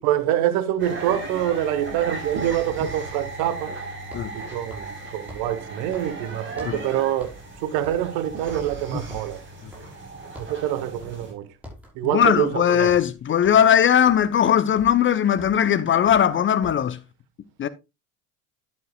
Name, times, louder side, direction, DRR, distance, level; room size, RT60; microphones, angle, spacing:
voice 1, 0.0-3.7 4.3-7.3 7.6-9.4 10.4-11.5 11.9-13.0, right 12 dB, 55° right, 1.3 m, -25 dB
sound 1, 0.8-11.3, right 2 dB, 25° right, 5.1 m, -36 dB
sound 2, 4.0-6.9 7.2-7.5 7.8-10.1 10.3-10.7 11.0-11.3 11.5-16.9, left 1 dB, 5° right, 5.5 m, -46 dB
voice 2, 12.1-17.0 17.6-17.7, left 9 dB, 25° left, 0.7 m, -19 dB
11.0 x 9.0 x 2.3 m
figure-of-eight pair, 65°, 44 cm